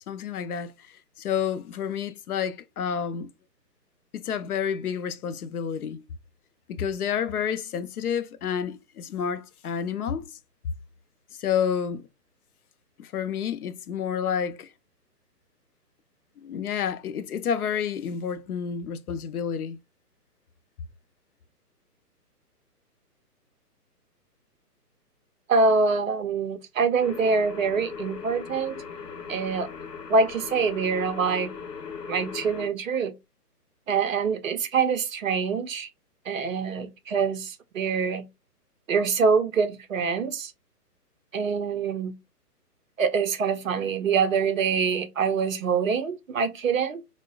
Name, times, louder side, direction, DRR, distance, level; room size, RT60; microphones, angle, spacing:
voice 1, 0.1-0.7 1.2-3.3 4.1-6.0 6.7-10.3 11.4-12.1 13.0-14.7 16.4-19.8, left 7 dB, 70° left, 0.5 m, -29 dB
voice 2, 25.5-28.8 29.3-29.7 30.1-31.5 32.1-33.1 33.9-35.9 36.3-38.2 38.9-40.5 41.3-42.1 43.0-47.0, right 5 dB, 55° right, 0.6 m, -25 dB
sound 1, 27.0-32.7, left 6 dB, 85° left, 1.0 m, -38 dB
4.5 x 2.1 x 2.3 m
hypercardioid pair, 160°, 48 cm